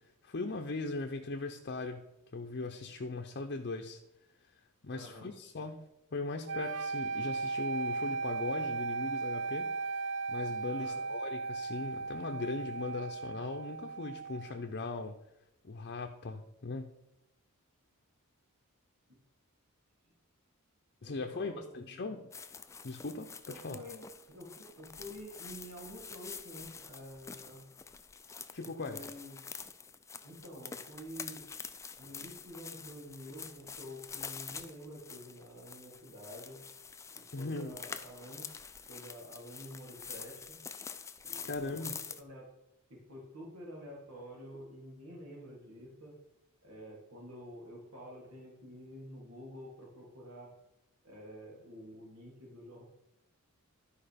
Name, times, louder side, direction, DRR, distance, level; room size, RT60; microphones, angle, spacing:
voice 1, 0.2-2.0 2.3-4.0 4.8-5.8 6.1-9.7 10.3-15.2 15.6-16.9 21.0-22.2 22.8-23.3 23.6-23.8 28.5-29.0 37.3-37.7 41.4-41.9, left 3 dB, 50° left, 4 dB, 0.7 m, -39 dB
voice 2, 4.9-5.3 10.6-11.0 21.0-22.0 23.5-27.6 28.6-29.5 30.2-31.4 32.0-36.6 37.4-38.5 38.9-40.6 41.2-41.8 42.1-42.5 42.9-46.1 46.6-50.5 51.0-52.8, equal, 85° right, -3 dB, 3.4 m, -49 dB
sound 1, 6.5-14.5, right 4 dB, 55° right, 0.4 m, -36 dB
sound 2, 22.3-42.2, left 6 dB, 15° left, 0.3 m, -47 dB
12.0 x 4.9 x 5.1 m, 0.85 s
head